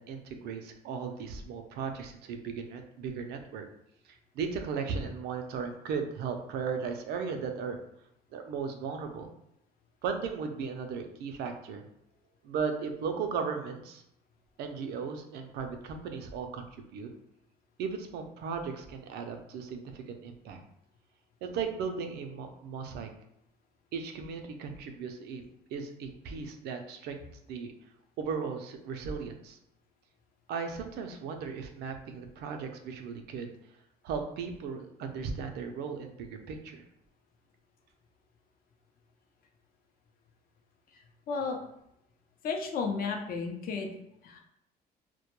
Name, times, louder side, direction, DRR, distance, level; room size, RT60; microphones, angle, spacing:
voice 1, 0.0-3.6 4.1-7.8 8.3-9.3 10.0-11.8 12.4-14.0 14.6-16.6 16.9-17.1 17.8-20.6 21.4-23.1 23.9-25.4 25.7-27.2 27.5-27.7 28.2-29.6 30.5-33.5 34.0-36.8, right 5 dB, 75° right, 5 dB, 0.4 m, -36 dB
voice 2, 41.3-41.6 42.4-43.9 44.2-44.4, left 5 dB, 60° left, 2 dB, 0.5 m, -33 dB
2.2 x 2.1 x 2.9 m, 0.77 s
cardioid pair, 110°, 17 cm